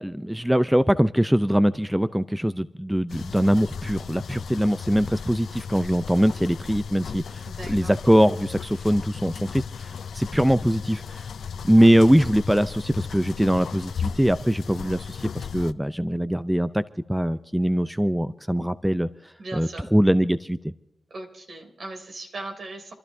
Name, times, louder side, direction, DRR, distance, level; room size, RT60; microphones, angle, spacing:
voice 1, 0.0-11.3 11.6-16.8 17.1-20.7, equal, 5° right, 13 dB, 0.5 m, -22 dB
sound 1, 3.1-15.7, left 6 dB, 85° left, 0.4 m, -36 dB
voice 2, 7.5-7.9 19.4-19.9 21.1-22.9, right 2 dB, 70° right, 4 dB, 3.0 m, -38 dB
30.0 x 12.0 x 2.7 m, 0.87 s
cardioid pair, 50°, 0 cm